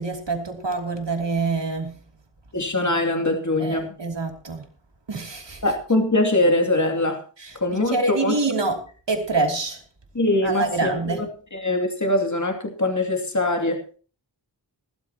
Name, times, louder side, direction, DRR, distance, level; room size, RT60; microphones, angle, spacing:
voice 1, 0.0-2.0 3.6-4.6 5.1-5.6 7.4-9.8 10.4-11.3, right 3 dB, 75° right, 3.0 m, -26 dB
voice 2, 2.5-3.9 5.6-7.2 7.6-8.0 8.2-8.4 10.1-11.2 11.6-13.8, left 1 dB, 40° left, 2.6 m, -22 dB
20.0 x 13.0 x 2.9 m
wide cardioid pair, 60°, 43 cm